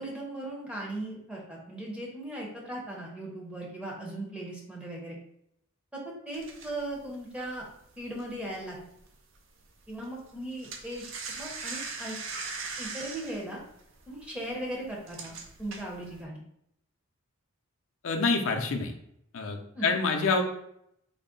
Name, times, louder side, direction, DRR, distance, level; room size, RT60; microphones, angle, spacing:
voice 1, 0.0-5.2 5.9-6.0 6.3-7.7 8.0-8.8 9.9-12.2 12.8-13.6 14.1-16.4 19.7-19.9, right 1 dB, 5° right, -3 dB, 0.7 m, -38 dB
sound 1, 6.3-9.1 9.4-9.6 9.9-16.2, right 4 dB, 60° right, 0.5 m, -40 dB
voice 2, 18.0-18.9 19.3-20.4, left 4 dB, 70° left, 3 dB, 0.4 m, -27 dB
3.7 x 2.0 x 3.7 m, 0.75 s
head